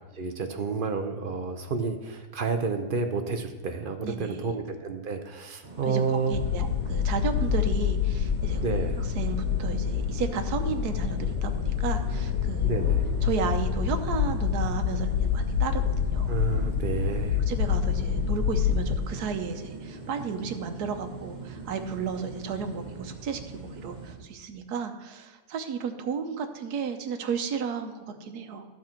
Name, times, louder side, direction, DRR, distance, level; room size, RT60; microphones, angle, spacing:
voice 1, 0.1-6.4 8.6-9.0 12.6-13.1 16.3-17.4, right 5 dB, 55° right, 6 dB, 0.6 m, -30 dB
voice 2, 4.0-4.4 5.8-8.6 9.0-12.7 13.2-16.3 17.5-28.7, right 6 dB, 80° right, 7 dB, 1.3 m, -33 dB
sound 1, 5.6-24.1, right 3 dB, 30° right, 1.2 m, -41 dB
sound 2, 6.3-19.0, left 8 dB, 65° left, 0.7 m, -27 dB
13.0 x 6.1 x 4.4 m, 1.2 s
omnidirectional pair, 1.7 m